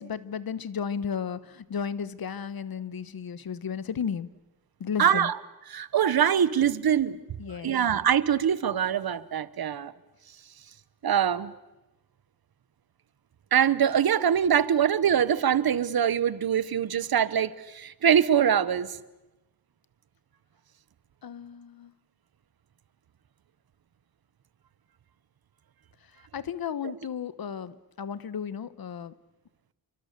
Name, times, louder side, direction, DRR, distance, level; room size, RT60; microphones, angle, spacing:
voice 1, 0.0-4.3 4.8-5.3 7.4-7.7 21.2-21.9 26.3-29.1, left 7 dB, 70° left, 15 dB, 1.1 m, -34 dB
voice 2, 5.0-5.4 5.7-7.2 7.6-9.9 11.0-11.5 13.5-19.0, right 8 dB, 75° right, 16 dB, 1.1 m, -23 dB
30.0 x 24.5 x 6.8 m, 1.0 s
wide cardioid pair, 95°, 37 cm